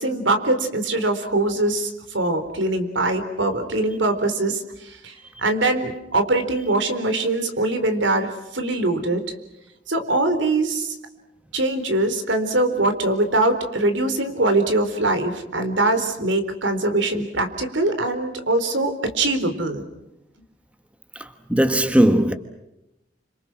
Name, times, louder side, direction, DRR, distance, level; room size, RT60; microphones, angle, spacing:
voice 1, 0.0-9.3 9.9-11.0 11.5-19.8, right 2 dB, 80° right, 4.0 m, -22 dB
voice 2, 21.5-22.3, right 1 dB, 5° right, 1.4 m, -17 dB
30.0 x 27.0 x 6.2 m
head